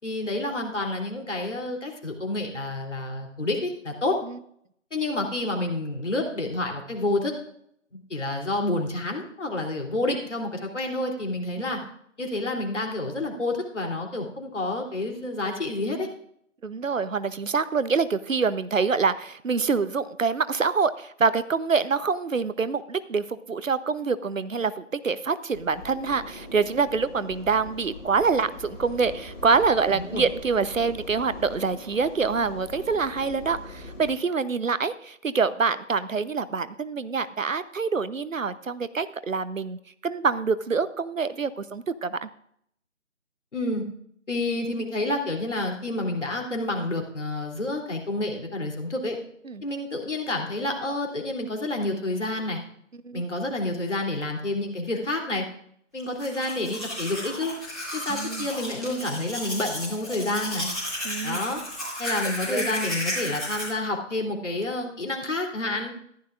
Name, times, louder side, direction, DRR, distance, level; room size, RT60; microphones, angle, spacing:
voice 1, 0.0-4.2 4.9-7.3 7.9-11.8 12.2-16.1 29.9-30.2 43.5-43.8 44.3-49.2 49.6-52.6 53.1-55.4 55.9-57.5 57.9-60.7 61.2-61.6 62.0-65.9, left 2 dB, 65° left, 1 dB, 3.2 m, -29 dB
voice 2, 16.6-42.3 49.5-49.6 53.0-53.2 58.1-58.5 61.0-61.4 62.5-62.6, right 5 dB, 80° right, 15 dB, 0.9 m, -26 dB
sound 1, 25.5-34.1, left 2 dB, 35° left, 4.6 m, -42 dB
Domestic sounds home sounds, 56.0-63.7, left 1 dB, ahead, 1.6 m, -33 dB
14.5 x 11.5 x 2.5 m, 0.68 s
figure-of-eight pair, 160°, 39 cm